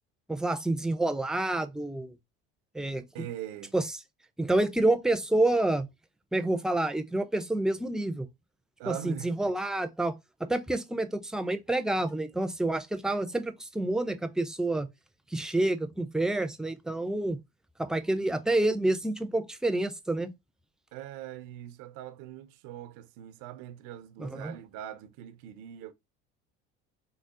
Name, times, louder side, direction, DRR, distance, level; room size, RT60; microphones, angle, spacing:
voice 1, 0.3-2.1 2.7-3.0 3.7-3.8 4.4-5.9 6.3-8.3 8.9-10.1 10.5-14.9 15.3-17.4 17.8-20.3 24.2-24.5, right 2 dB, ahead, 0.5 m, -28 dB
voice 2, 3.1-3.7 8.8-9.5 20.9-25.9, right 11 dB, 70° right, 0.6 m, -42 dB
3.9 x 2.0 x 3.6 m
hypercardioid pair, 80°, 33 cm